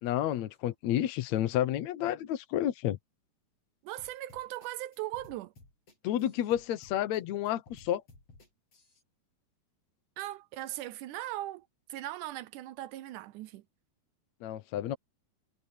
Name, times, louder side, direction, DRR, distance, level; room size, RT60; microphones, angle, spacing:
voice 1, 0.0-3.0 6.0-8.0 14.4-15.0, left 12 dB, 70° left, 1.7 m, -30 dB
voice 2, 3.8-5.5 10.2-13.6, right 15 dB, 85° right, 1.7 m, -39 dB
sound 1, 4.0-9.0, left 3 dB, 40° left, 8.8 m, -57 dB
omnidirectional pair, 4.4 m